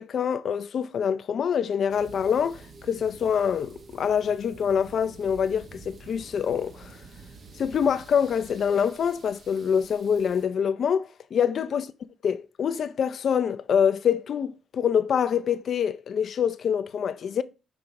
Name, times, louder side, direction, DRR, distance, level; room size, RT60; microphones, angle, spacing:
voice 1, 0.0-2.6 2.9-7.0 7.6-11.9 12.2-17.4, left 7 dB, 55° left, 0.4 m, -25 dB
sound 1, 1.9-10.4, right 4 dB, 50° right, 1.2 m, -49 dB
5.9 x 3.3 x 5.1 m
cardioid pair, 90°, 0 cm